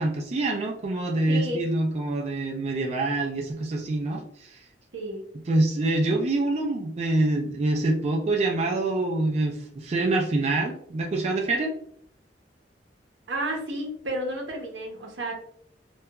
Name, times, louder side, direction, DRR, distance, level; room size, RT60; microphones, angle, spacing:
voice 1, 0.0-4.6 5.5-11.7, right 2 dB, 35° right, 0 dB, 0.3 m, -25 dB
voice 2, 1.3-1.6 4.9-5.2 13.3-15.3, right 1 dB, 85° right, 1 dB, 0.7 m, -31 dB
2.8 x 2.2 x 2.2 m, 0.66 s
head